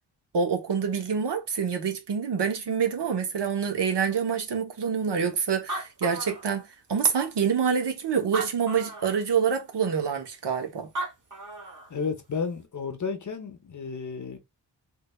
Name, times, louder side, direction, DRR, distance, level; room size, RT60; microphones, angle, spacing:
voice 1, 0.3-10.9, right 6 dB, 75° right, 0.9 m, -26 dB
Animal, 5.3-5.4 5.5-6.9 7.6-7.7 8.2-9.2 10.7-10.8 11.0-11.9, right 2 dB, 45° right, 1.0 m, -35 dB
voice 2, 11.9-14.4, left 5 dB, 45° left, 0.7 m, -32 dB
3.3 x 3.2 x 2.2 m
wide cardioid pair, 155°, 42 cm